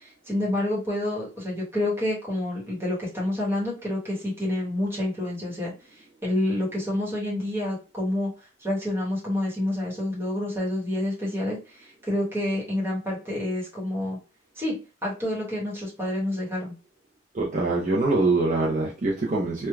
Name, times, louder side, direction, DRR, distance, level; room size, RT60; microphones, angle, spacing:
voice 1, 0.0-5.7 6.2-8.3 8.6-14.2 14.6-14.7 15.0-16.7, left 1 dB, 10° right, 1.1 m, -28 dB
voice 2, 17.3-19.7, right 2 dB, 40° right, 0.5 m, -24 dB
3.1 x 2.2 x 2.2 m
head